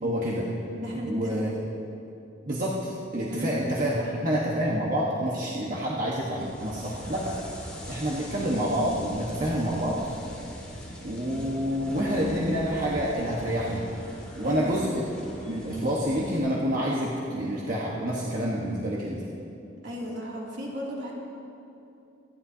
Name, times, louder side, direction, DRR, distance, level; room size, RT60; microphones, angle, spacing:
voice 1, 0.0-0.5 1.0-1.5 2.5-7.4 7.9-10.0 11.0-13.9 14.4-14.9 15.5-19.2, equal, 45° right, -5 dB, 1.3 m, -28 dB
voice 2, 0.7-1.3 3.3-3.7 4.0-4.1 14.4-14.7 19.8-21.1, equal, 70° right, -4 dB, 2.7 m, -35 dB
sound 1, 6.4-16.4, left 1 dB, 5° left, 2.6 m, -41 dB
26.0 x 11.0 x 2.8 m, 2.8 s
head